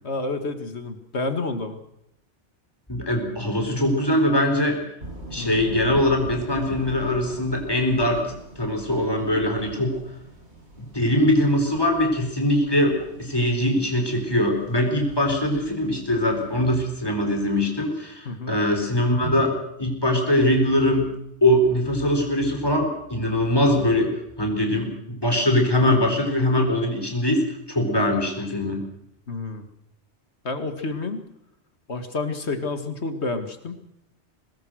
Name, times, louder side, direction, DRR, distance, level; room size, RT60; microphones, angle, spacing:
voice 1, 0.0-1.8 5.4-5.7 18.3-18.5 29.3-29.7 30.4-31.2 31.9-33.8, left 3 dB, 70° left, 8 dB, 2.3 m, -29 dB
voice 2, 2.9-4.8 5.3-8.2 8.6-10.0 10.8-21.1 21.4-24.1 24.4-28.9, left 1 dB, 20° left, 3 dB, 4.4 m, -22 dB
sound 1, 5.0-17.1, right 1 dB, 70° right, 7.0 m, -43 dB
23.5 x 20.0 x 6.5 m, 0.82 s
omnidirectional pair, 1.2 m